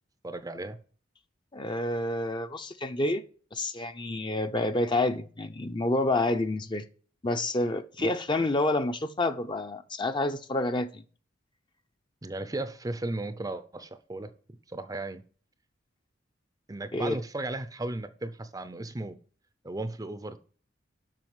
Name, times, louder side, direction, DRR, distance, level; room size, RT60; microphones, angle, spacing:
voice 1, 0.2-0.8 8.0-8.1 12.2-14.3 14.7-15.2 16.7-19.2 19.6-20.4, right 2 dB, 20° right, 0.6 m, -35 dB
voice 2, 1.5-3.2 3.5-6.8 7.2-11.0 16.9-17.2, left 2 dB, 25° left, 0.7 m, -28 dB
7.6 x 5.8 x 7.3 m
head